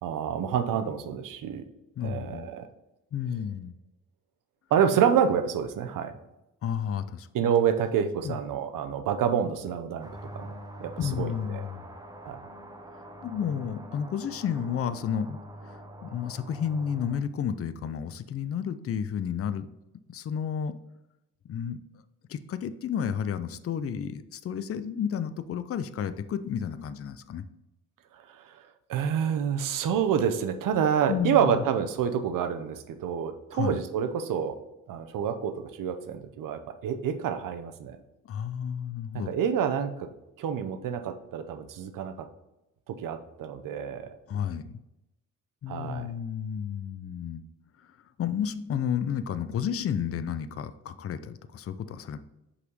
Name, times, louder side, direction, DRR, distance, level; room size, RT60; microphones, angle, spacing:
voice 1, 0.0-1.6 2.0-2.7 4.7-6.2 7.3-10.1 10.3-10.5 10.8-10.9 11.2-11.6 12.2-12.4 28.3-34.5 34.9-38.0 39.3-40.1 40.4-42.1 42.9-44.2 45.7-46.1, right 8 dB, 90° right, 8 dB, 0.7 m, -28 dB
voice 2, 2.0-2.5 3.1-3.7 6.6-7.3 8.2-8.4 11.0-11.9 13.2-15.4 15.6-19.7 20.1-20.7 21.5-21.8 22.3-27.4 31.1-31.6 33.5-33.8 38.2-39.3 44.3-44.8 45.6-47.4 48.2-52.2, left 8 dB, 45° left, 12 dB, 0.5 m, -31 dB
sound 1, 10.0-17.2, right 1 dB, 10° right, 0.7 m, -45 dB
5.5 x 4.1 x 5.3 m, 0.93 s
cardioid pair, 105°, 32 cm